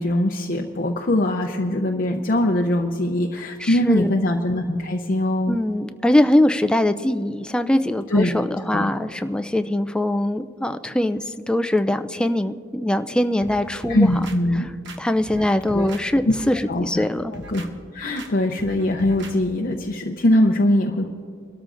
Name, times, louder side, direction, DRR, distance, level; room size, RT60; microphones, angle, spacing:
voice 1, 0.0-5.6 8.1-8.4 8.7-8.9 13.9-14.6 15.7-15.9 16.2-16.3 16.7-17.1 17.3-17.7 17.9-21.1, left 1 dB, 45° left, 2 dB, 0.7 m, -21 dB
voice 2, 3.6-4.1 5.5-14.1 15.0-17.3, left 1 dB, 5° left, 9 dB, 0.3 m, -22 dB
sound 1, 13.4-14.4 14.8-16.0 16.3-16.7 17.1-17.7 18.2-18.3 18.6-19.3 19.7-19.8, right 1 dB, 60° right, 1.0 m, -40 dB
25.5 x 13.0 x 2.5 m, 2.4 s
head